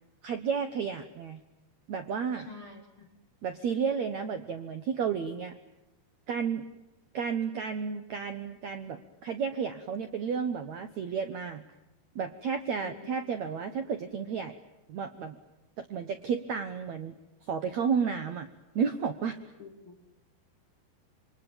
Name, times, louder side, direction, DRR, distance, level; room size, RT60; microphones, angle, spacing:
voice 1, 0.2-1.4 1.9-2.5 3.4-5.6 6.3-6.6 7.1-11.6 12.1-14.5 14.9-15.4 15.8-17.2 17.5-18.5 18.7-19.4, right 6 dB, 85° right, 9 dB, 1.5 m, -32 dB
voice 2, 2.3-3.1 12.8-13.1 19.6-20.0, left 4 dB, 40° left, 2 dB, 2.3 m, -48 dB
27.5 x 23.5 x 8.9 m, 0.94 s
omnidirectional pair, 5.0 m